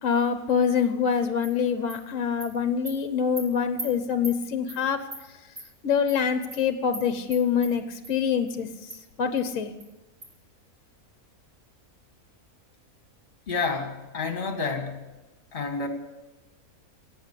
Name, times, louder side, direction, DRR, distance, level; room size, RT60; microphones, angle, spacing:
voice 1, 0.0-5.0 5.8-8.7 9.2-9.7, left 7 dB, 60° left, 9 dB, 1.3 m, -25 dB
Animal, 1.4-1.5 1.9-2.0 2.4-2.5 2.9-3.0 3.4-3.5 3.8-3.9 4.2-4.4 4.7-4.8 5.1-5.2 5.6-5.7 6.1-6.2 6.5-6.6 6.9-7.0 7.3-7.7 8.0-8.1 8.5-8.6 8.9-9.0 9.4-9.5 9.8-9.9 10.2-10.3, right 1 dB, 45° right, 3.1 m, -38 dB
voice 2, 13.5-15.1 15.5-15.9, left 4 dB, 40° left, 5 dB, 2.1 m, -29 dB
16.5 x 8.9 x 8.3 m, 1.1 s
omnidirectional pair, 1.5 m